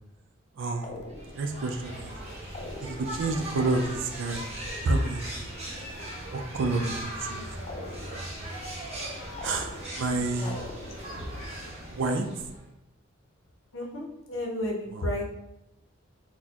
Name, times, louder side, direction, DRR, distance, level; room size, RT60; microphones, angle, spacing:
voice 1, 0.5-1.1 1.3-2.2 2.8-4.5 4.8-5.5 6.3-7.5 9.4-10.5 11.9-12.2 14.9-15.1, right 2 dB, 65° right, 6 dB, 0.4 m, -29 dB
sound 1, 0.8-1.5 2.5-3.3 3.6-4.3 7.7-8.4 9.4-10.1 10.5-11.2, left 2 dB, 35° left, 0.4 m, -42 dB
sound 2, 1.1-12.7, right 1 dB, 35° right, 0.8 m, -39 dB
voice 2, 10.2-10.5 13.7-15.3, left 1 dB, 85° left, 0 dB, 0.7 m, -33 dB
4.1 x 2.1 x 2.9 m, 0.87 s
head